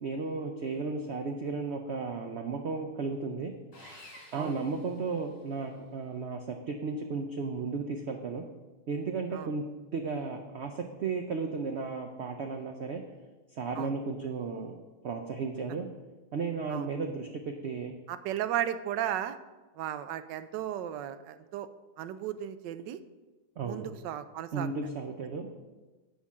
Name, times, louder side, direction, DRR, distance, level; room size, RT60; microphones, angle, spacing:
voice 1, 0.0-3.5 4.3-8.4 8.9-9.6 9.9-13.0 13.5-15.9 16.3-17.9 23.6-23.9 24.5-25.5, right 4 dB, 70° right, 4 dB, 0.6 m, -34 dB
Sawing, 3.7-5.6, left 1 dB, 50° left, 3.2 m, -52 dB
voice 2, 18.1-19.4 19.8-21.7 22.0-23.0 23.6-24.7, right 11 dB, 85° right, 12 dB, 1.2 m, -35 dB
10.5 x 3.8 x 7.1 m, 1.2 s
omnidirectional pair, 1.9 m